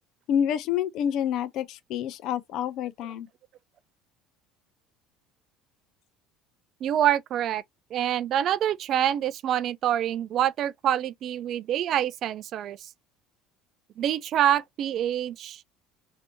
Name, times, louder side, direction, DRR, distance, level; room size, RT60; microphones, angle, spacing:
voice 1, 0.3-3.3, left 9 dB, 60° left, 0.6 m, -28 dB
voice 2, 6.8-7.6 7.9-12.9 14.0-15.6, right 11 dB, 55° right, 0.4 m, -26 dB
3.3 x 2.8 x 2.8 m
hypercardioid pair, 75°, 0 cm